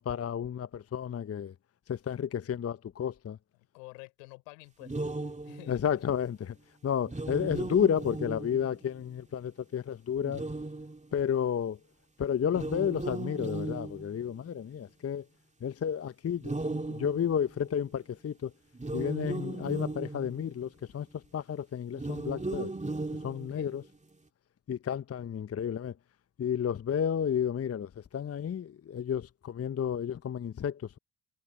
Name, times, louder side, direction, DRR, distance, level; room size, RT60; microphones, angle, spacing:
voice 1, 0.0-1.5 1.9-3.4 5.7-6.5 6.8-10.4 11.1-11.8 12.2-15.2 15.6-18.5 18.9-22.7 23.2-23.8 24.7-25.9 26.4-31.0, left 8 dB, 30° left, 0.8 m, -31 dB
voice 2, 3.7-6.2 23.3-23.8, left 36 dB, 75° left, 4.2 m, -50 dB
sound 1, 4.8-5.9 7.0-9.0 10.2-11.3 12.5-14.6 16.4-17.8 18.7-20.7 21.9-23.9, right 2 dB, 15° right, 2.4 m, -37 dB
hypercardioid pair, 45°, 49 cm